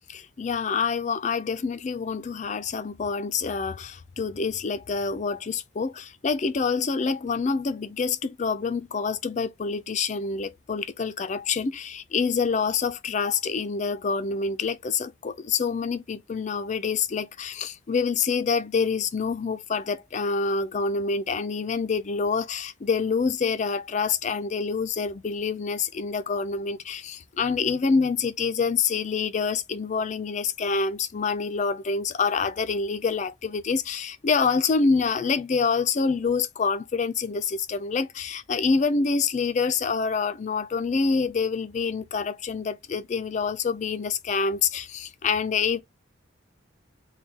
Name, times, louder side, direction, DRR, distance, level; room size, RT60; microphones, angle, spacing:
voice 1, 0.1-45.8, left 5 dB, 35° left, 0.4 m, -26 dB
3.9 x 2.2 x 3.3 m
head